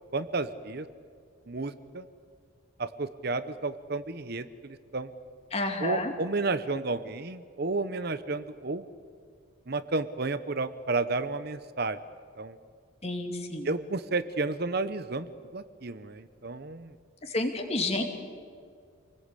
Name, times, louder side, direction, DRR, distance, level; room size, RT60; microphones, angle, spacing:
voice 1, 0.1-0.9 1.5-2.0 2.8-5.1 5.8-8.9 9.7-12.0 12.4-12.6 13.6-15.3 15.5-16.9, right 3 dB, 50° right, 12 dB, 0.8 m, -32 dB
voice 2, 5.5-6.1 13.0-13.7 17.2-18.0, left 2 dB, 30° left, 5 dB, 2.5 m, -30 dB
27.0 x 20.0 x 8.4 m, 2.1 s
head